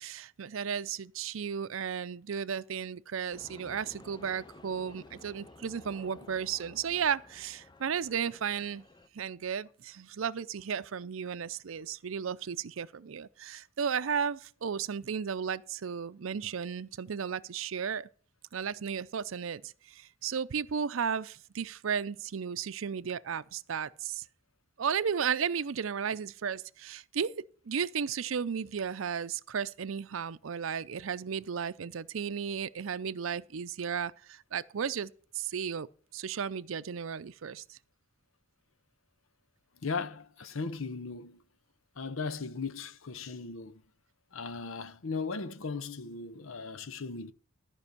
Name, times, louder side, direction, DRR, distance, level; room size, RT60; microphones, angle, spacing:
voice 1, 0.0-8.8 9.1-18.1 18.5-24.2 24.8-35.9 36.1-37.8, right 7 dB, 75° right, 0.5 m, -34 dB
sound 1, 3.3-9.1, left 2 dB, 20° left, 0.6 m, -54 dB
voice 2, 39.8-41.4 42.0-43.8 44.3-47.3, left 4 dB, 75° left, 0.8 m, -37 dB
13.5 x 5.4 x 6.7 m
head